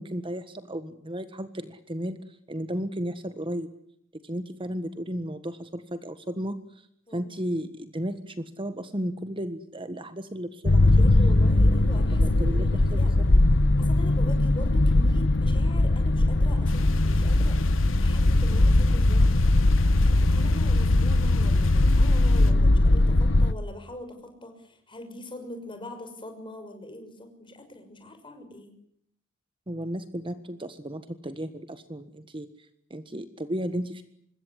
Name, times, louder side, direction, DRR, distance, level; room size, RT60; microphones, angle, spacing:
voice 1, 0.0-3.7 4.2-11.0 12.2-13.4 29.7-34.0, equal, 25° right, 11 dB, 1.5 m, -34 dB
sound 1, 10.6-23.5, left 2 dB, 65° left, 1.0 m, -20 dB
voice 2, 11.0-13.1 13.8-19.2 20.1-28.7, left 1 dB, 25° left, 6 dB, 6.1 m, -42 dB
sound 2, 16.7-22.5, left 3 dB, 90° left, 2.5 m, -41 dB
25.5 x 21.5 x 9.9 m, 0.72 s
head